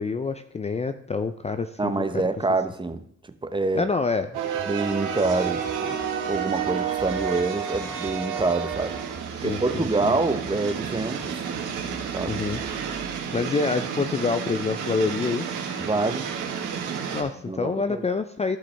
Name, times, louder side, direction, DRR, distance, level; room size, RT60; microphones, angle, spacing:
voice 1, 0.0-1.9 3.7-4.4 9.4-9.9 12.3-12.6 13.3-15.5 17.1-18.6, left 4 dB, 20° left, 0.5 m, -26 dB
voice 2, 1.8-3.0 3.4-3.9 4.7-6.0 6.3-9.0 9.4-11.4 12.1-12.4 15.8-16.3 17.5-18.0, right 3 dB, 15° right, 0.8 m, -26 dB
sound 1, 4.3-13.2, right 5 dB, 35° right, 1.2 m, -44 dB
sound 2, 4.3-17.2, right 7 dB, 80° right, 1.6 m, -30 dB
15.0 x 5.4 x 3.4 m
cardioid pair, 90°, 30 cm